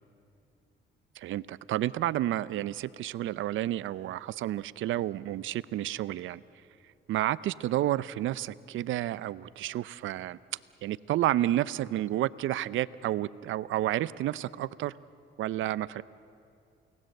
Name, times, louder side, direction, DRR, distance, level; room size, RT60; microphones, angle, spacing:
voice 1, 1.2-6.4 7.1-10.4 10.8-14.9 15.4-16.0, right 13 dB, 80° right, 18 dB, 0.6 m, -30 dB
29.0 x 19.5 x 7.9 m, 2.4 s
cardioid pair, 90°, 20 cm